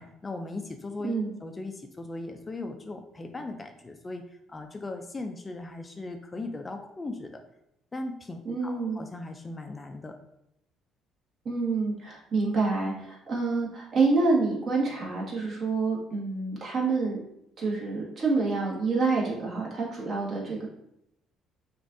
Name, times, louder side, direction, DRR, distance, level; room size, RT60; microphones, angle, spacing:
voice 1, 0.0-1.1 1.4-7.4 7.9-10.2, left 2 dB, 25° left, 6 dB, 0.4 m, -38 dB
voice 2, 8.4-9.0 11.4-17.2 17.6-20.7, right 3 dB, 50° right, -4 dB, 1.5 m, -27 dB
6.1 x 2.5 x 2.6 m, 0.79 s
cardioid pair, 95°, 0 cm